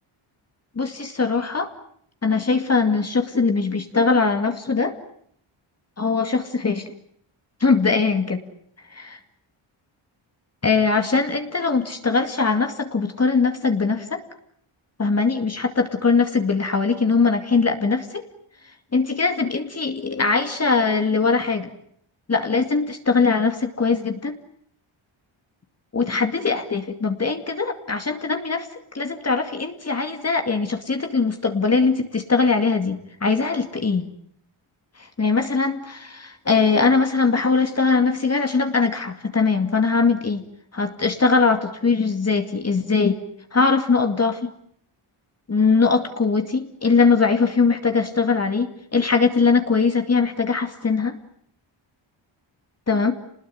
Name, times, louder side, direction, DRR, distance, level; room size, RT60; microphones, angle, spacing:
voice 1, 0.8-1.7 2.2-5.0 6.0-6.9 7.6-8.4 8.9-9.2 10.6-14.2 15.0-18.3 18.9-21.7 22.3-24.4 25.9-28.7 28.9-34.1 35.0-40.4 40.7-43.2 43.5-44.5 45.5-51.2 52.9-53.1, left 4 dB, 30° left, 6 dB, 2.4 m, -21 dB
28.5 x 20.5 x 9.5 m, 0.67 s
cardioid pair, 105°, 49 cm